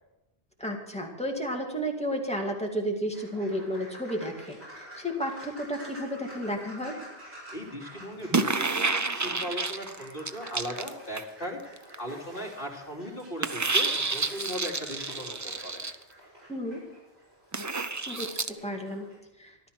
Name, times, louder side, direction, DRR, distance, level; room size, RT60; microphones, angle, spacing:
voice 1, 0.6-6.9 16.5-16.8 18.1-19.0 19.4-19.6, equal, 5° left, 0 dB, 2.2 m, -32 dB
sound 1, 3.1-19.2, equal, 85° right, 7.0 m, -49 dB
voice 2, 7.5-15.8, equal, 60° left, -1 dB, 3.1 m, -38 dB
sound 2, 8.3-11.4 11.8-11.9 13.4-15.9 17.5-18.5, right 3 dB, 25° right, 0.4 m, -29 dB
14.0 x 12.0 x 6.2 m, 0.93 s
omnidirectional pair, 1.0 m